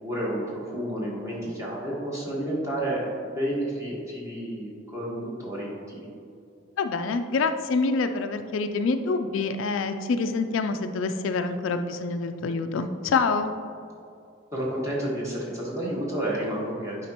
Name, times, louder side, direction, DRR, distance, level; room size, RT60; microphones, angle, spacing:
voice 1, 0.0-6.1 14.5-17.1, right 1 dB, 15° right, -5 dB, 1.4 m, -30 dB
voice 2, 6.8-13.5, left 4 dB, 70° left, 8 dB, 0.3 m, -26 dB
8.4 x 4.9 x 2.9 m, 2.5 s
head